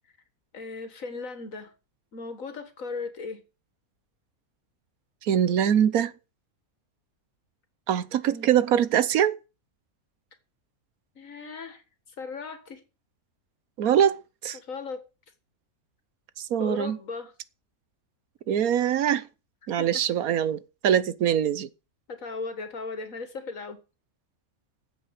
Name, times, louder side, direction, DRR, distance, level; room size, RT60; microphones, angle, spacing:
voice 1, 0.5-1.7 2.1-3.4 8.2-8.5 11.2-11.8 12.2-12.8 14.5-15.0 16.6-17.3 19.8-20.0 22.1-23.8, left 4 dB, 65° left, 2.2 m, -37 dB
voice 2, 5.2-6.1 7.9-9.3 13.8-14.6 16.4-17.0 18.5-19.3 19.7-21.7, right 9 dB, 80° right, 1.3 m, -23 dB
9.3 x 7.8 x 8.1 m
omnidirectional pair, 1.5 m